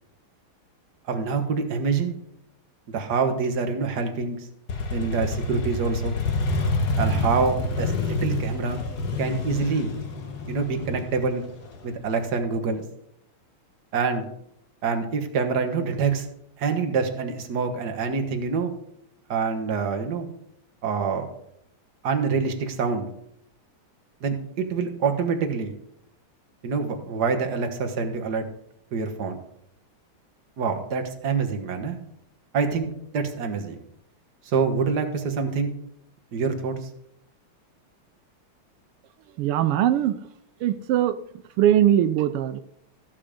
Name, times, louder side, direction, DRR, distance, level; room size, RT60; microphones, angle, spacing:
voice 1, 1.1-2.1 2.9-4.5 4.9-6.2 7.0-8.8 9.2-9.9 10.5-11.4 11.8-12.8 13.9-14.3 14.8-16.3 16.6-18.7 19.3-20.3 20.8-21.3 22.0-23.1 24.2-25.7 26.6-28.4 28.9-29.4 30.6-32.0 32.5-33.8 34.5-35.7 36.3-36.8, right 5 dB, 50° right, 5 dB, 1.8 m, -26 dB
Motorcycle, 4.7-12.3, left 2 dB, 50° left, 1.7 m, -28 dB
voice 2, 39.4-40.3 40.6-41.2 41.6-42.6, right 11 dB, 85° right, 11 dB, 1.6 m, -21 dB
14.5 x 7.5 x 5.1 m, 0.73 s
omnidirectional pair, 2.4 m